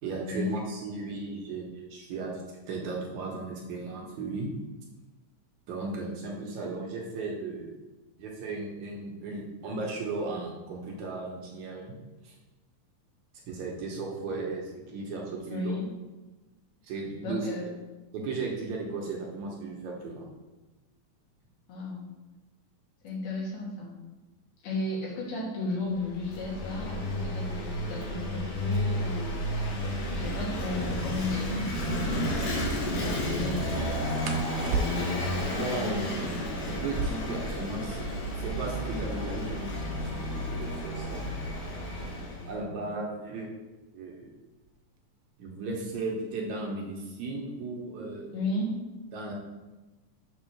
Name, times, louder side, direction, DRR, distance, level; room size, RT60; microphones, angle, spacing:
voice 1, 0.0-4.5 5.7-7.7 8.2-12.0 12.2-12.3 13.5-15.7 16.8-17.5 18.1-20.3 35.5-38.0 38.3-41.3 42.4-43.6 43.9-44.3 45.4-48.4 49.1-49.3, right 3 dB, 70° right, -1 dB, 2.1 m, -36 dB
voice 2, 15.5-15.9 17.2-17.7 21.7-22.0 23.0-23.9 24.6-29.7 30.1-34.4 48.3-48.8, left 2 dB, 90° left, -4 dB, 3.6 m, -34 dB
Vehicle / Engine, 25.9-42.6, equal, 70° left, 2.9 m, -32 dB
sound 1, 31.5-31.8 34.2-35.3 36.8-38.4 38.7-38.8 39.0-39.6 40.2-42.8 43.8-44.1 44.5-45.0 45.3-46.1, right 3 dB, 85° right, 2.4 m, -36 dB
7.1 x 3.6 x 6.0 m, 1.1 s
omnidirectional pair, 4.0 m